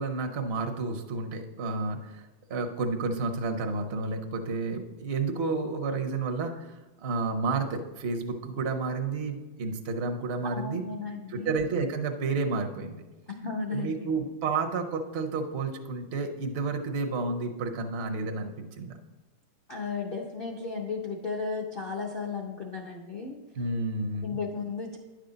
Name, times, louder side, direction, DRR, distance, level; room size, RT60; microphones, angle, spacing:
voice 1, 0.0-2.2 2.5-10.8 11.3-13.0 13.7-19.0 23.6-24.4, right 3 dB, 65° right, 5 dB, 0.6 m, -31 dB
voice 2, 10.5-11.5 13.3-14.1 19.7-23.4 24.2-25.0, left 4 dB, 70° left, -1 dB, 0.5 m, -34 dB
10.0 x 6.5 x 3.9 m, 1.2 s
omnidirectional pair, 2.1 m